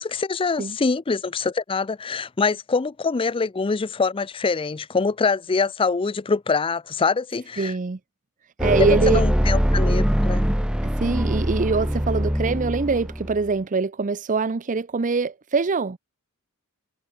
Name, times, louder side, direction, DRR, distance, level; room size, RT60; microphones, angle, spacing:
voice 1, 0.0-7.7 9.1-10.5, left 4 dB, 25° left, 0.4 m, -24 dB
voice 2, 7.6-8.0 8.6-9.2 10.8-16.0, right 4 dB, 35° right, 0.6 m, -23 dB
sound 1, 8.6-13.5, equal, 5° right, 1.1 m, -22 dB
head